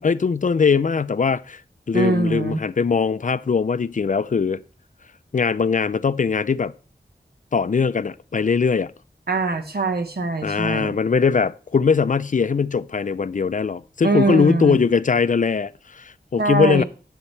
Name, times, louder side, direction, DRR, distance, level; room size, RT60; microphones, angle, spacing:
voice 1, 0.0-1.6 1.9-4.6 5.3-6.7 7.5-8.9 10.4-16.8, left 5 dB, 50° left, 0.4 m, -21 dB
voice 2, 1.9-2.6 9.3-11.0 14.0-14.8 16.4-16.8, right 3 dB, 70° right, 1.3 m, -22 dB
10.5 x 7.3 x 3.3 m
wide cardioid pair, 60°, 17 cm